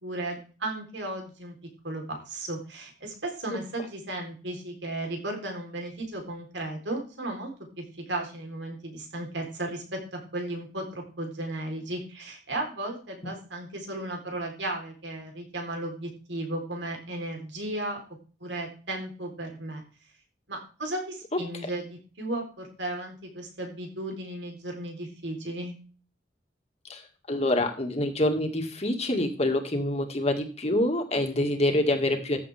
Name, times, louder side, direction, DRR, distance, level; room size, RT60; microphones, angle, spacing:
voice 1, 0.0-1.5 1.8-18.0 18.4-19.8 20.5-25.8, right 1 dB, 80° right, 2 dB, 3.9 m, -35 dB
voice 2, 26.9-32.4, left 1 dB, 35° left, 4 dB, 2.1 m, -26 dB
14.0 x 8.5 x 3.5 m, 0.37 s
head